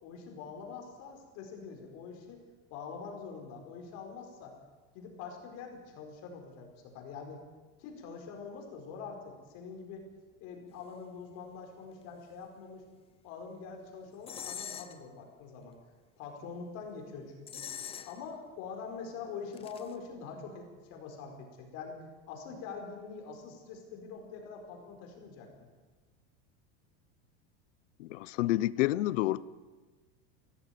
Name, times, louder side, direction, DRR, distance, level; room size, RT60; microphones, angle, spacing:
voice 1, 0.0-2.4 2.7-4.6 4.9-7.4 7.8-10.1 10.4-12.9 13.2-15.7 16.2-17.6 18.0-25.7, left 5 dB, 45° left, 3 dB, 4.7 m, -44 dB
sound 1, 14.3-15.0 17.5-18.3 19.5-19.9, left 8 dB, 15° left, 0.8 m, -42 dB
voice 2, 28.0-29.4, left 16 dB, 85° left, 18 dB, 1.0 m, -29 dB
24.5 x 17.0 x 9.4 m, 1.3 s
supercardioid pair, 170°, 36 cm